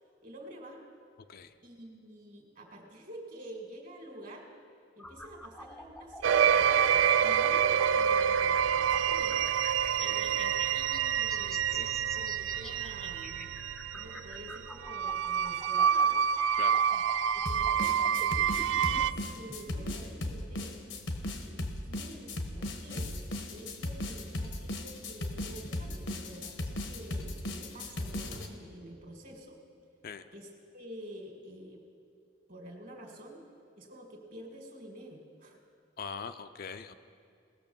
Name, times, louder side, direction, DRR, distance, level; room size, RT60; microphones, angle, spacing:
voice 1, 0.2-0.8 1.6-4.5 5.0-9.5 10.0-13.6 13.9-16.2 16.9-17.0 17.3-20.8 21.4-23.1 23.5-29.6 30.3-31.8 32.5-33.5 33.7-35.6, equal, 45° right, 2 dB, 1.9 m, -48 dB
sound 1, 5.0-20.0, left 1 dB, 5° left, 0.5 m, -48 dB
sound 2, 6.2-19.1, right 8 dB, 80° right, 0.3 m, -27 dB
sound 3, 17.5-28.5, left 1 dB, 85° left, 1.1 m, -36 dB
voice 2, 36.0-36.9, left 6 dB, 50° left, 9 dB, 0.4 m, -41 dB
18.5 x 6.2 x 7.0 m, 2.4 s
head